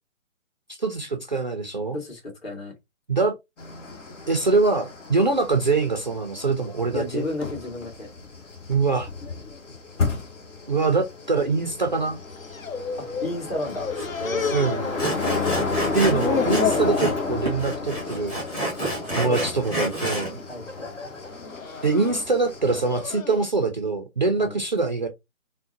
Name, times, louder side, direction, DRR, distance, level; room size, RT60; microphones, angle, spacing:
voice 1, 0.7-2.0 3.1-3.3 4.3-7.3 8.7-9.1 10.7-12.2 14.5-14.9 15.9-18.4 19.1-20.4 21.8-25.1, right 3 dB, 35° right, 0.4 m, -23 dB
voice 2, 1.9-2.7 6.9-8.1 13.0-13.9 14.2-14.6 18.8-19.7 20.5-21.2 24.4-24.6, left 1 dB, 45° left, 1.9 m, -33 dB
sound 1, 3.6-23.1, left 4 dB, 65° left, 1.2 m, -32 dB
sound 2, 12.2-13.3 13.6-15.5 15.8-16.9 17.4-17.8 18.1-18.3 19.1-19.5 20.0-20.4 21.2-23.4, left 5 dB, 80° left, 0.9 m, -32 dB
Sawing, 14.0-14.1 14.4-14.5 15.0-17.2 17.5-20.3, right 1 dB, 10° left, 0.9 m, -29 dB
3.6 x 2.1 x 2.7 m
figure-of-eight pair, 140°, 40 cm